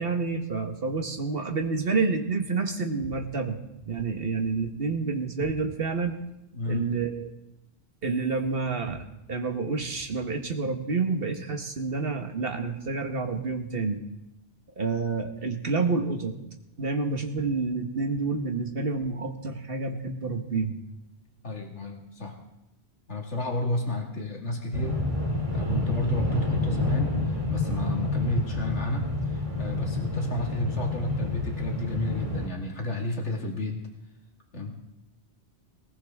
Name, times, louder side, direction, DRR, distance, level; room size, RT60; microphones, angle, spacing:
voice 1, 0.0-3.6 3.9-6.2 6.7-7.3 8.0-14.0 14.8-16.3 16.8-20.8, right 4 dB, 55° right, 5 dB, 1.6 m, -29 dB
voice 2, 6.5-6.9 21.4-22.4 23.1-25.0 25.5-27.2 27.5-33.8 34.5-34.7, left 2 dB, 90° left, 0 dB, 2.4 m, -31 dB
sound 1, 24.7-32.5, left 2 dB, 30° right, 2.3 m, -29 dB
19.5 x 18.5 x 3.6 m, 0.91 s
omnidirectional pair, 1.1 m